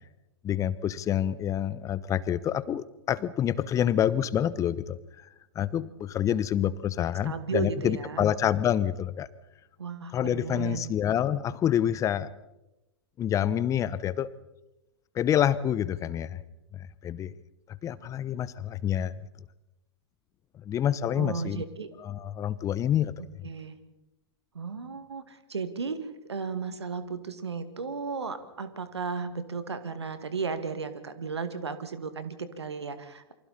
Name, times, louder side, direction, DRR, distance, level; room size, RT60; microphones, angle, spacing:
voice 1, 0.4-5.0 5.5-9.3 10.1-12.3 13.2-14.3 15.1-16.4 17.0-17.3 17.8-19.1 20.6-21.6 22.0-23.3, left 10 dB, 25° left, 18 dB, 0.9 m, -27 dB
voice 2, 7.2-8.3 9.8-10.9 21.1-21.9 23.4-23.8 24.5-26.0 26.3-33.3, right 5 dB, 75° right, 11 dB, 2.2 m, -34 dB
28.5 x 24.5 x 4.3 m, 0.96 s
figure-of-eight pair, 105°, 14 cm